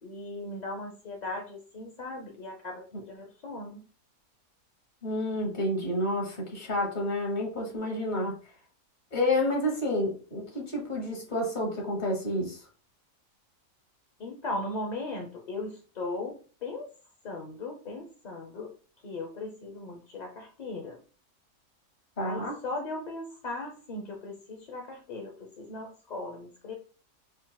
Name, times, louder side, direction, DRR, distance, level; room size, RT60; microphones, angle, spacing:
voice 1, 0.0-3.8 14.2-16.9 17.2-18.7 19.0-21.0 22.2-26.7, left 2 dB, 65° left, 0.4 m, -38 dB
voice 2, 5.0-8.4 9.1-12.6 22.2-22.5, left 1 dB, 30° left, 1.2 m, -29 dB
3.8 x 3.8 x 2.2 m
omnidirectional pair, 1.7 m